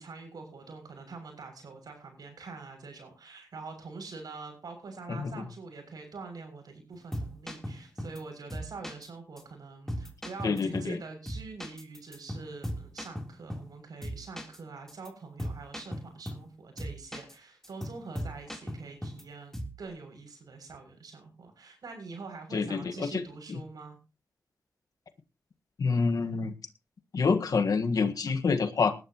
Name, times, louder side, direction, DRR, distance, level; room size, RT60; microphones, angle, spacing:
voice 1, 0.0-24.0, right 4 dB, 75° right, 5 dB, 6.8 m, -45 dB
voice 2, 5.1-5.4 10.4-11.0 22.5-23.2 25.8-26.5 27.1-28.9, left 4 dB, 65° left, 7 dB, 1.6 m, -27 dB
sound 1, 6.9-8.2 8.5-9.1 9.4-9.5 9.9-11.0 11.2-13.7 14.0-14.6 14.9-15.1 15.4-16.5 16.8-17.3 17.6-19.2 19.5-19.8, equal, 5° left, 3.5 m, -38 dB
19.5 x 12.0 x 3.0 m, 0.31 s
cardioid pair, 70°, 7 cm